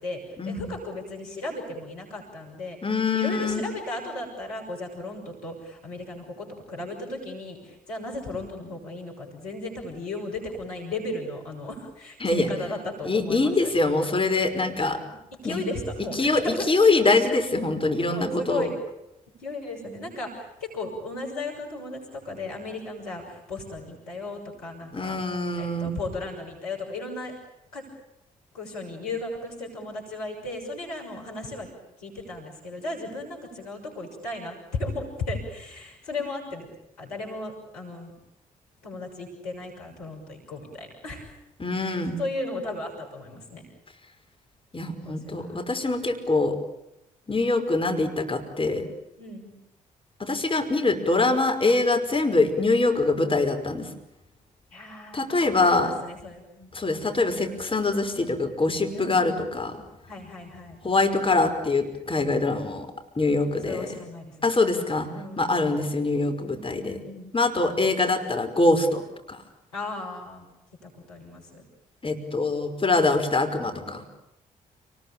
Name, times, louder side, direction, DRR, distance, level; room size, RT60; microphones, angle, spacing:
voice 1, 0.0-2.8 3.1-13.7 15.0-15.1 15.4-16.7 18.1-18.7 19.4-25.2 25.6-27.3 27.7-27.9 28.5-31.7 32.0-36.7 37.0-38.1 38.8-41.4 41.7-43.7 45.0-45.7 49.2-49.6 54.7-56.7 58.9-59.4 60.1-60.8 63.6-64.5 64.9-65.5 66.5-67.3 69.7-70.4 70.8-71.6, left 2 dB, 85° left, 0 dB, 6.5 m, -35 dB
voice 2, 2.8-3.6 12.2-12.5 13.0-15.0 15.4-15.6 16.2-18.7 24.9-26.0 41.6-42.2 44.7-46.6 47.3-48.9 50.2-53.9 55.1-55.9 56.7-59.7 60.8-62.9 63.2-64.0 64.4-65.1 65.4-67.0 67.3-69.4 72.0-74.0, left 3 dB, 30° left, 6 dB, 5.5 m, -24 dB
29.5 x 20.5 x 9.0 m, 0.86 s
hypercardioid pair, 40°, 19 cm